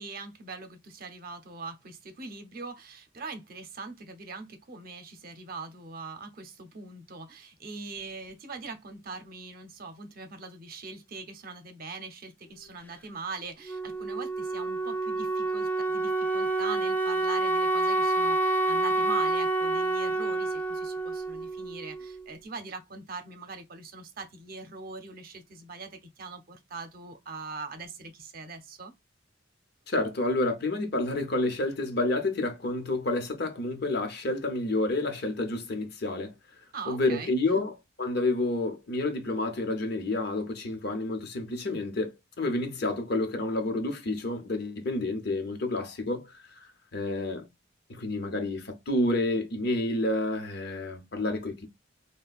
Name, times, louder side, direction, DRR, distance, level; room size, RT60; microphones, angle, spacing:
voice 1, 0.0-28.9 36.7-37.7, right 4 dB, 50° right, 0.7 m, -42 dB
Wind instrument woodwind instrument, 13.6-22.3, right 2 dB, 10° left, 0.3 m, -28 dB
voice 2, 29.9-36.3 36.9-37.7 38.0-46.3 46.9-47.5 47.9-51.7, left 2 dB, 55° left, 0.9 m, -29 dB
3.7 x 2.2 x 2.3 m
head